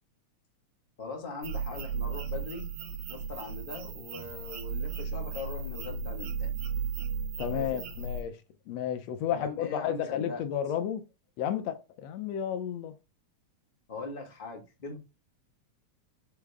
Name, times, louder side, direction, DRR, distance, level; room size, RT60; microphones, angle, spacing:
voice 1, 1.0-2.7 3.1-6.5 7.5-7.8 9.3-10.4 13.9-15.0, left 4 dB, 20° left, 1.5 m, -40 dB
sound 1, 1.4-8.2, right 5 dB, 75° right, 2.3 m, -35 dB
voice 2, 7.4-8.3 8.7-11.0 11.4-12.9, left 9 dB, 70° left, 1.8 m, -32 dB
6.7 x 4.5 x 3.6 m
omnidirectional pair, 3.4 m